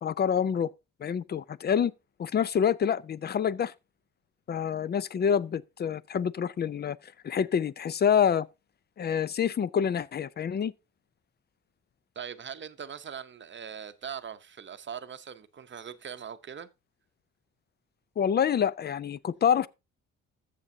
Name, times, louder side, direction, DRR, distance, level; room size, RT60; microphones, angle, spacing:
voice 1, 0.0-0.7 1.0-1.9 2.2-3.7 4.5-8.5 9.0-10.7 18.2-19.7, left 8 dB, 35° left, 0.5 m, -27 dB
voice 2, 12.1-16.7, right 7 dB, 40° right, 0.8 m, -41 dB
14.0 x 6.8 x 2.7 m
cardioid pair, 90°, 30 cm